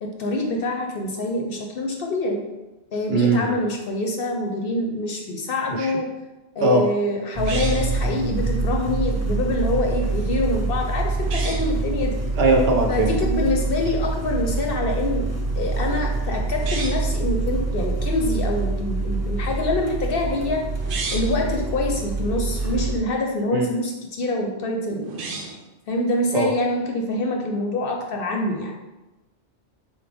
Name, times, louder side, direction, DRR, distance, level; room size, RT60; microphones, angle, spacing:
voice 1, 0.0-2.4 2.9-6.1 6.6-12.2 12.9-15.3 15.6-20.6 21.1-25.2 25.9-28.7, left 2 dB, 60° left, 2 dB, 0.7 m, -25 dB
voice 2, 3.1-3.5 5.7-5.9 6.6-6.9 12.4-13.1 23.5-23.7 26.3-26.5, right 2 dB, 60° right, 2 dB, 0.8 m, -19 dB
sound 1, 7.4-23.0, right 3 dB, 25° right, 0.3 m, -25 dB
sound 2, 7.4-8.0 11.2-11.7 16.5-17.1 20.7-21.4 25.0-25.7, right 4 dB, 85° right, 1.0 m, -32 dB
4.4 x 3.5 x 3.4 m, 1.1 s
omnidirectional pair, 1.2 m